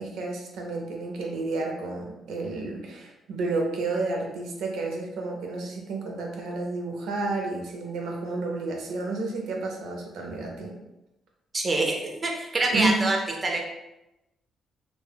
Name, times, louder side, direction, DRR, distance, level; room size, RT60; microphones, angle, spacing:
voice 1, 0.0-10.7 12.7-13.1, right 3 dB, 85° right, 1 dB, 0.5 m, -31 dB
voice 2, 11.5-13.2 13.4-13.6, right 2 dB, 25° right, 1 dB, 0.4 m, -25 dB
2.1 x 2.1 x 3.3 m, 0.92 s
cardioid pair, 120°, 0 cm